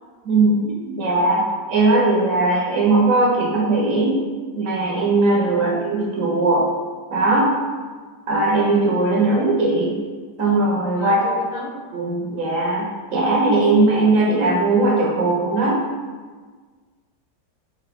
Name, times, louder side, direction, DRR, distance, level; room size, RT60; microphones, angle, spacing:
voice 1, 0.2-4.2 4.6-6.7 7.1-7.5 8.3-9.9 10.4-11.2 11.9-15.8, right 2 dB, 55° right, -3 dB, 1.0 m, -19 dB
voice 2, 11.0-11.7, left 2 dB, 65° left, 0 dB, 0.6 m, -35 dB
4.7 x 3.1 x 3.5 m, 1.4 s
omnidirectional pair, 1.9 m